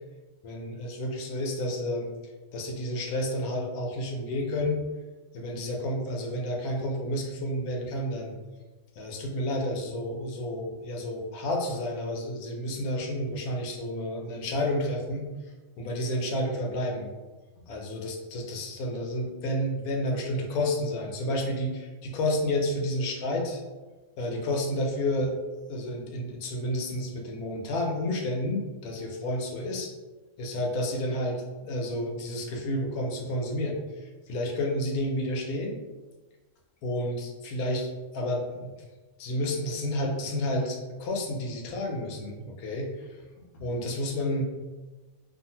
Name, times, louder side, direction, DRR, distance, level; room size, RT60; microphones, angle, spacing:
voice 1, 0.4-2.1 2.5-4.8 5.3-8.3 9.0-15.3 15.8-17.1 17.7-23.6 24.2-25.4 25.7-29.9 30.4-35.8 36.8-38.7 39.2-43.1 43.5-44.4, left 1 dB, 80° left, 0 dB, 1.0 m, -30 dB
2.6 x 2.4 x 2.7 m, 1.3 s
omnidirectional pair, 1.6 m